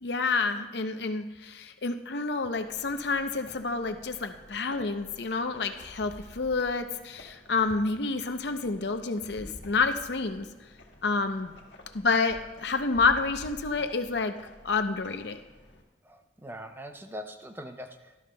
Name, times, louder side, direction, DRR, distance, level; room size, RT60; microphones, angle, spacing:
voice 1, 0.0-10.5 11.0-11.5 11.9-14.3 14.6-15.4, left 4 dB, 65° left, 8 dB, 0.7 m, -29 dB
sound 1, 2.5-15.8, left 1 dB, 90° left, 1.5 m, -51 dB
voice 2, 16.0-18.2, equal, 10° right, 7 dB, 0.6 m, -42 dB
17.5 x 12.0 x 2.2 m, 1.2 s
head